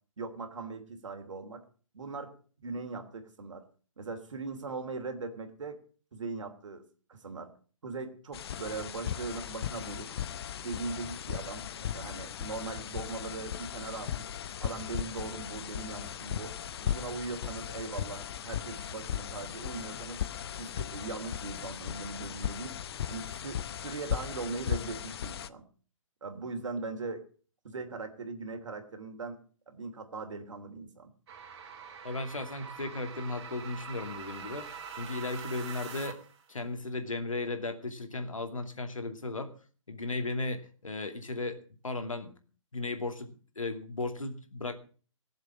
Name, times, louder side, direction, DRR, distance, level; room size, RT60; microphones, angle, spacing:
voice 1, 0.2-1.6 1.9-2.4 2.6-3.6 4.0-5.8 6.1-6.8 7.1-7.5 7.8-10.1 10.6-14.3 14.6-16.5 16.8-20.2 20.6-22.8 23.1-25.6 26.2-27.3 27.6-29.4 29.7-31.1, right 4 dB, 70° right, 6 dB, 3.0 m, -40 dB
sound 1, 8.3-25.5, left 9 dB, 50° left, 0.8 m, -37 dB
sound 2, 31.3-36.4, right 6 dB, 50° right, 3.3 m, -44 dB
voice 2, 32.0-36.2 36.5-39.5 39.9-42.3 42.7-44.8, left 2 dB, 80° left, 7 dB, 2.5 m, -36 dB
18.0 x 7.4 x 7.5 m, 0.41 s
figure-of-eight pair, 130°, 17 cm